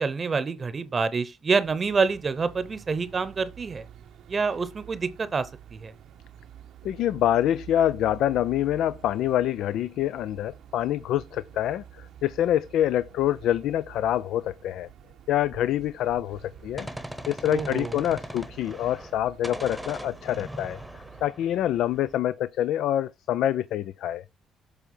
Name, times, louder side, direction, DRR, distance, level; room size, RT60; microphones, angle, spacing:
voice 1, 0.0-3.8 4.3-5.9 17.5-17.9, right 4 dB, 35° right, 0.8 m, -27 dB
sound 1, 1.6-21.3, right 10 dB, 75° right, 0.8 m, -49 dB
voice 2, 6.8-14.9 15.3-16.9 17.3-20.8 21.2-24.2, left 12 dB, 80° left, 0.3 m, -26 dB
Gunshot gunfire, 16.3-19.2 19.4-22.2, equal, ahead, 0.9 m, -40 dB
7.6 x 3.4 x 5.4 m
cardioid pair, 85°, 0 cm